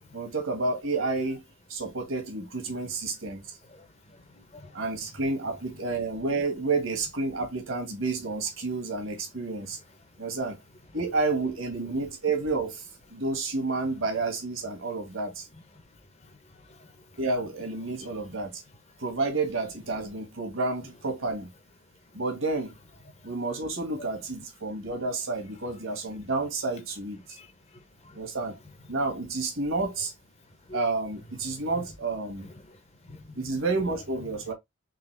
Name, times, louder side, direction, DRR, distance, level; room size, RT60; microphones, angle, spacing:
voice 1, 0.0-1.4 1.7-3.6 4.7-9.8 10.2-10.6 10.9-15.5 17.2-18.6 19.0-21.5 22.1-22.7 23.2-27.4 28.1-28.6 28.9-30.1 30.7-32.5 33.3-34.5, right 3 dB, 65° right, 1.5 m, -30 dB
voice 2, 3.7-4.8 16.2-17.0 27.3-28.2 30.7-30.8 31.5-31.6 32.4-33.5, left 1 dB, 30° left, 0.8 m, -50 dB
4.0 x 3.4 x 3.3 m
head